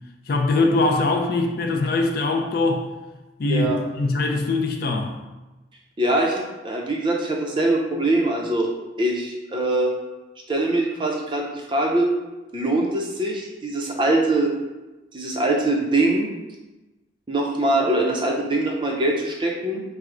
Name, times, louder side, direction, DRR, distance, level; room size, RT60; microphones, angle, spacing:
voice 1, 0.3-2.9 3.4-5.2, left 2 dB, 50° left, 2 dB, 0.4 m, -22 dB
voice 2, 3.4-3.8 6.0-8.7 9.0-9.9 10.5-12.1 12.5-14.5 15.1-16.3 17.3-19.8, right 2 dB, 25° right, 0 dB, 0.5 m, -22 dB
4.4 x 2.0 x 3.6 m, 1.1 s
head